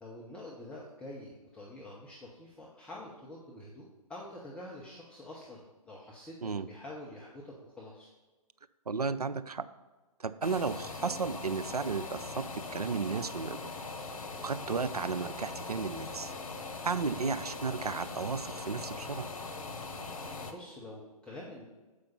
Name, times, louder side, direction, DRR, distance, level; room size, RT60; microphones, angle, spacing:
voice 1, 0.0-8.1 20.5-21.7, left 1 dB, 5° left, -5 dB, 0.8 m, -47 dB
voice 2, 8.9-9.7 10.2-13.7 14.4-16.3 16.8-19.3, right 5 dB, 85° right, 13 dB, 0.4 m, -34 dB
sound 1, 10.4-20.5, left 3 dB, 60° left, 1.1 m, -41 dB
7.7 x 5.0 x 5.6 m, 1.2 s
figure-of-eight pair, 125°, 19 cm